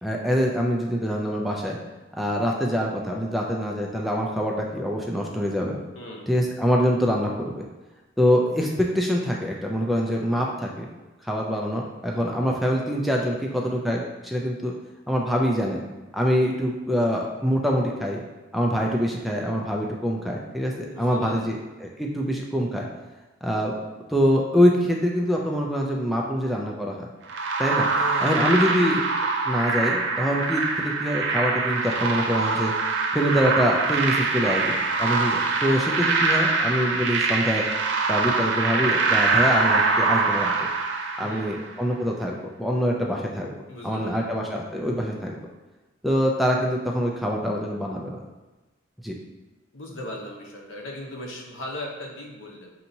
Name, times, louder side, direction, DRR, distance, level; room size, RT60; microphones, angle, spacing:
voice 1, 0.0-1.8 2.2-5.8 6.3-7.5 8.2-10.9 11.2-14.7 15.1-15.8 16.1-18.2 18.5-22.9 23.4-23.7 24.1-27.1 27.6-27.9 28.2-29.0 29.5-32.7 33.1-37.6 38.1-40.5 41.2-43.5 43.8-45.4 46.0-48.2 49.0-49.2, equal, ahead, -1 dB, 0.3 m, -24 dB
voice 2, 6.0-6.3 20.9-21.6 27.9-28.8 41.2-41.5 43.7-44.3 49.7-52.7, left 1 dB, 75° left, 0 dB, 0.8 m, -37 dB
sound 1, 27.3-41.7, right 3 dB, 65° right, 0.5 m, -24 dB
5.4 x 2.8 x 2.6 m, 1.1 s
head